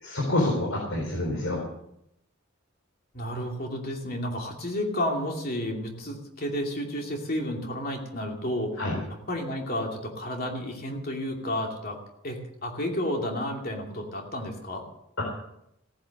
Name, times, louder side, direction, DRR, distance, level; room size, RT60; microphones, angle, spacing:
voice 1, 0.0-1.6 8.8-9.0 15.2-15.3, left 1 dB, 75° left, -1 dB, 3.8 m, -27 dB
voice 2, 3.1-8.8 9.3-12.0 12.2-14.8, left 1 dB, 50° left, 1 dB, 2.7 m, -31 dB
16.0 x 10.5 x 6.6 m, 0.77 s
head